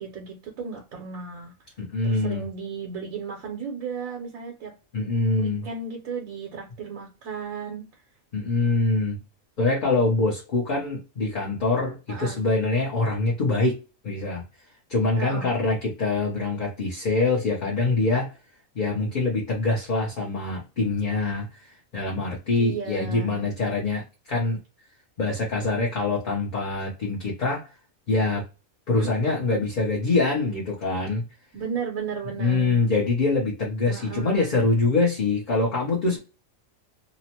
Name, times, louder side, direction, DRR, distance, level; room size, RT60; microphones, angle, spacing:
voice 1, 0.0-1.5 2.0-4.7 5.4-7.8 12.1-12.4 15.2-15.5 22.6-23.5 28.9-29.1 31.5-32.8 33.9-34.6, right 5 dB, 80° right, 1.2 m, -35 dB
voice 2, 1.8-2.4 4.9-5.7 8.3-9.2 9.6-13.8 14.0-14.4 14.9-18.3 18.7-24.6 25.2-27.7 28.1-28.4 28.9-31.2 32.4-36.2, left 3 dB, 45° left, 0.7 m, -24 dB
2.9 x 2.1 x 2.8 m
omnidirectional pair, 1.4 m